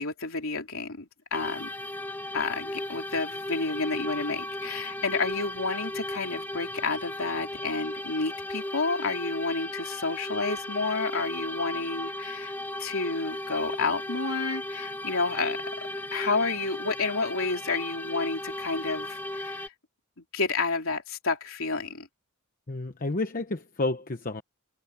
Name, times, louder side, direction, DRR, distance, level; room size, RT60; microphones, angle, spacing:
voice 1, 0.0-1.7 2.3-12.5 12.8-19.7 20.2-22.1, left 3 dB, 65° left, 3.7 m, -30 dB
sound 1, 1.3-19.7, left 1 dB, 10° left, 1.9 m, -36 dB
voice 2, 22.7-24.4, left 2 dB, 40° left, 1.0 m, -30 dB
head